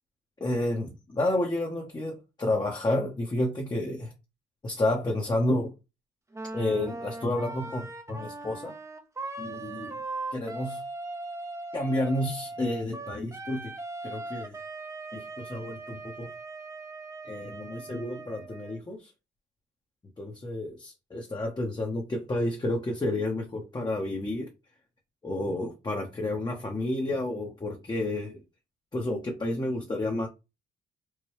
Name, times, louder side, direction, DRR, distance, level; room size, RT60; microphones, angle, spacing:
voice 1, 0.4-4.1 4.6-5.7 6.5-8.7 9.4-9.9 10.3-10.8 11.7-13.7 14.0-14.6 15.1-16.3 17.2-19.1 20.2-24.5 25.2-28.4 28.9-30.3, left 1 dB, 20° left, 0.9 m, -30 dB
Wind instrument woodwind instrument, 6.3-18.8, right 2 dB, 15° right, 0.6 m, -39 dB
4.7 x 2.2 x 3.0 m
cardioid pair, 90°, 20 cm